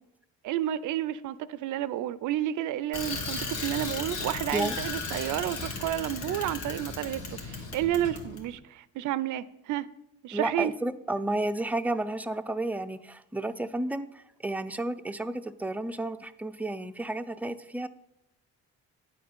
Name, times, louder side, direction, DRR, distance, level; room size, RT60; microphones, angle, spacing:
voice 1, 0.4-9.9 10.2-10.7, right 12 dB, 80° right, 0.4 m, -31 dB
Bicycle, 2.9-8.4, left 3 dB, 80° left, 1.7 m, -35 dB
voice 2, 10.3-17.9, right 1 dB, 5° right, 0.4 m, -32 dB
9.4 x 4.3 x 6.7 m
cardioid pair, 90°, 30 cm